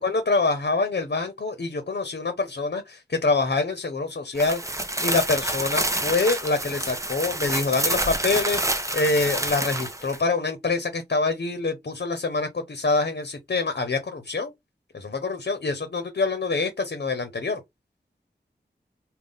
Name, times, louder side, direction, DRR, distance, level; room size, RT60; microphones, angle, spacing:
voice 1, 0.0-4.6 5.0-8.6 8.9-14.5 14.9-17.6, left 3 dB, 60° left, 0.8 m, -25 dB
sound 1, 4.3-10.2, right 1 dB, 15° right, 0.8 m, -28 dB
3.7 x 2.3 x 3.5 m
wide cardioid pair, 60°, 18 cm